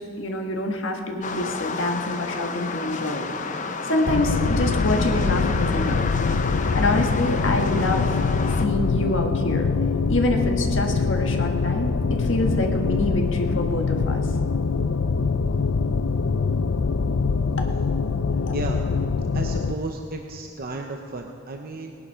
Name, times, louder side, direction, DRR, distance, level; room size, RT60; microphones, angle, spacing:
voice 1, 0.2-3.3 3.8-6.0 6.7-8.2 8.5-9.7 10.1-14.3, left 1 dB, 70° left, 3 dB, 1.6 m, -26 dB
sound 1, 1.2-8.7, left 4 dB, 40° left, 0.7 m, -31 dB
sound 2, 4.1-19.7, left 4 dB, 90° left, 0.5 m, -24 dB
voice 2, 18.5-18.8 19.3-22.0, right 2 dB, 45° right, 3 dB, 0.7 m, -33 dB
18.5 x 10.5 x 5.6 m, 2.8 s
head